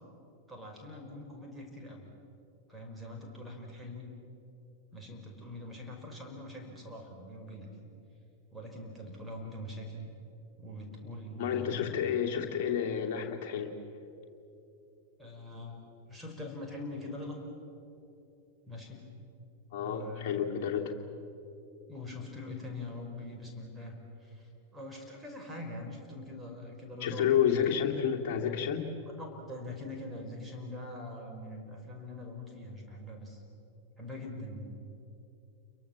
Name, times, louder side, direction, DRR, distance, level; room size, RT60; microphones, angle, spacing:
voice 1, 0.5-2.1 2.7-4.1 4.9-7.9 8.5-10.1 10.6-12.2 15.2-17.4 18.7-19.0 19.8-20.7 21.9-27.5 29.1-33.4 34.0-34.7, left 1 dB, 10° right, 0 dB, 5.7 m, -43 dB
voice 2, 11.4-13.7 19.7-20.9 27.0-28.9, left 8 dB, 45° left, 1 dB, 2.9 m, -30 dB
30.0 x 23.0 x 7.5 m, 2.9 s
figure-of-eight pair, 90°, 0 cm